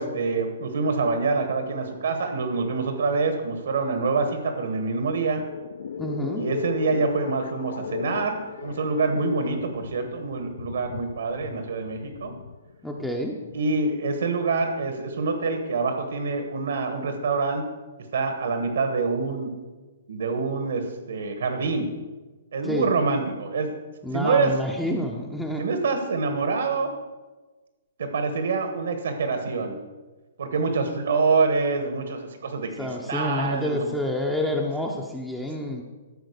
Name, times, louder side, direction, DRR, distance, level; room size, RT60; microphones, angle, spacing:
voice 1, 0.0-5.4 6.4-12.3 13.5-17.7 18.1-19.5 20.1-21.9 22.5-23.7 24.1-24.5 25.6-26.9 28.0-29.8 30.4-33.9, right 4 dB, 75° right, 6 dB, 1.3 m, -26 dB
sound 1, 5.1-13.9, left 7 dB, 60° left, 0.4 m, -37 dB
voice 2, 6.0-6.4 12.8-13.4 22.6-22.9 24.0-25.6 32.8-35.8, left 1 dB, ahead, 0 dB, 0.5 m, -28 dB
13.0 x 5.0 x 6.7 m, 1.3 s
hypercardioid pair, 175°, 0 cm